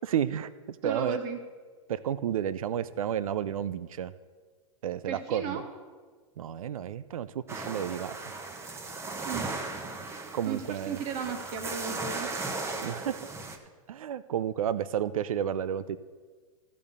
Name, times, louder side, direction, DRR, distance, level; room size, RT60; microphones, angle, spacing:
voice 1, 0.0-1.2 1.9-4.1 4.8-5.6 6.4-8.2 10.3-11.0 12.8-13.3 13.9-16.0, right 9 dB, 90° right, 15 dB, 0.5 m, -31 dB
voice 2, 0.8-1.4 5.0-5.6 9.2-9.5 10.5-12.3, right 6 dB, 50° right, 4 dB, 1.8 m, -35 dB
sound 1, 7.5-13.6, right 3 dB, 15° right, 1.1 m, -37 dB
13.5 x 5.4 x 6.7 m, 1.5 s
hypercardioid pair, 120°, 17 cm